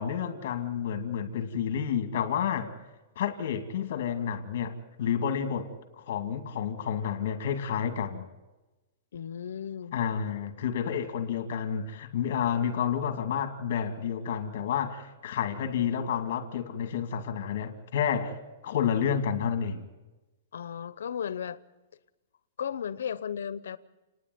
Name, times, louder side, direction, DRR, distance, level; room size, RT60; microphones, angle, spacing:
voice 1, 0.0-2.7 3.2-5.7 6.0-8.3 9.9-18.4 18.6-19.8, left 8 dB, 50° left, 2.4 m, -30 dB
voice 2, 9.1-10.0 20.5-21.6 22.6-23.8, left 8 dB, 90° left, 0.9 m, -35 dB
30.0 x 10.0 x 9.5 m
hypercardioid pair, 175°, 0 cm